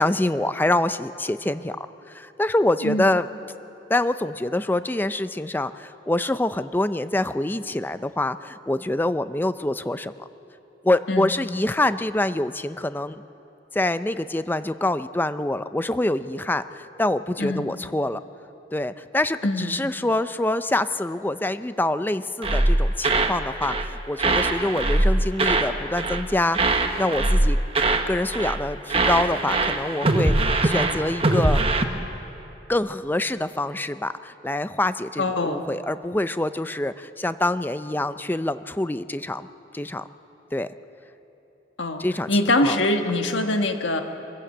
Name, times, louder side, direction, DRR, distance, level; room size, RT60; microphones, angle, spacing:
voice 1, 0.0-3.3 3.9-10.3 10.8-13.2 13.7-18.2 18.7-26.6 27.0-27.6 28.1-31.6 32.7-39.5 39.7-40.1 40.5-40.7 42.0-42.3 42.6-42.9, left 1 dB, 10° left, 12 dB, 0.4 m, -25 dB
voice 2, 19.4-19.7 35.2-35.6 41.8-42.0 42.3-44.0, left 2 dB, 90° left, 5 dB, 1.5 m, -23 dB
sound 1, 22.4-23.4 23.6-23.9 24.2-25.7 26.0-26.3 26.5-28.1 28.3-28.6 28.9-31.8, right 2 dB, 30° right, 1.1 m, -22 dB
24.0 x 15.0 x 8.1 m, 3.0 s
head